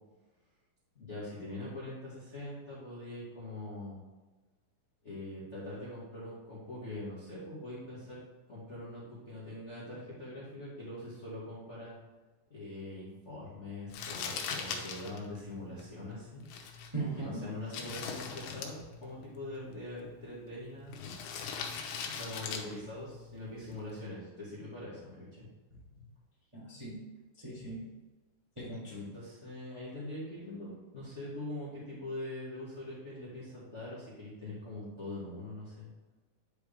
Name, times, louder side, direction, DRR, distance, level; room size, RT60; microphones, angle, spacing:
voice 1, 0.9-4.0 5.0-8.2 8.5-12.0 12.5-16.4 17.2-21.1 22.0-25.5 28.9-35.9, left 1 dB, 30° left, -9 dB, 1.4 m, -43 dB
Crumpling crinkling, 13.9-24.1, left 6 dB, 85° left, 2.8 m, -42 dB
voice 2, 16.9-17.6 25.7-26.0 26.5-27.0 27.4-27.9 28.5-29.1, right 2 dB, 10° right, -8 dB, 1.5 m, -39 dB
10.5 x 4.8 x 3.4 m, 1.2 s
omnidirectional pair, 4.3 m